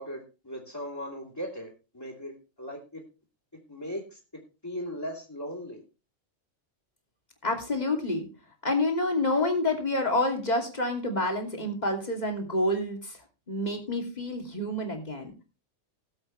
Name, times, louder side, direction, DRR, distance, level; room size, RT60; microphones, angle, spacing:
voice 1, 0.0-3.0 3.7-5.8, equal, 15° left, -5 dB, 3.1 m, -38 dB
voice 2, 7.4-8.3 8.6-13.2 13.5-15.3, left 1 dB, 30° left, 3 dB, 2.9 m, -28 dB
19.0 x 7.9 x 3.3 m, 0.30 s
omnidirectional pair, 1.3 m